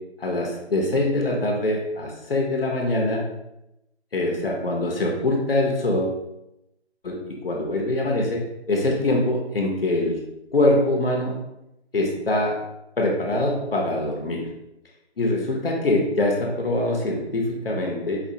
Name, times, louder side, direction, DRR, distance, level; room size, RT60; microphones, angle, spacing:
voice 1, 0.2-3.2 4.1-6.2 7.0-7.2 7.4-8.4 8.7-10.2 10.5-11.3 11.9-12.5 13.0-14.4 15.2-18.2, left 1 dB, 60° left, -1 dB, 0.8 m, -23 dB
5.0 x 2.4 x 2.7 m, 0.87 s
hypercardioid pair, 180°, 33 cm